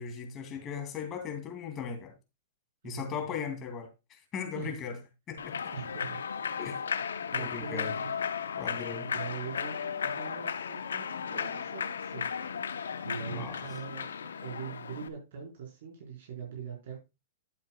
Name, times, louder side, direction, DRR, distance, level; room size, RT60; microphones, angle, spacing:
voice 1, 0.0-2.1 2.8-5.0 5.3-5.7 6.6-6.8 7.4-7.9 8.6-9.1 13.3-13.6, left 6 dB, 30° left, 2.5 m, -38 dB
voice 2, 2.8-3.3 4.5-4.8 5.7-6.2 7.3-8.2 9.0-12.3 13.0-17.0, right 6 dB, 65° right, 4.4 m, -42 dB
Human voice / Clapping / Cheering, 5.4-15.1, left 7 dB, 85° left, 0.9 m, -35 dB
11.5 x 8.7 x 2.3 m
hypercardioid pair, 125°, 0 cm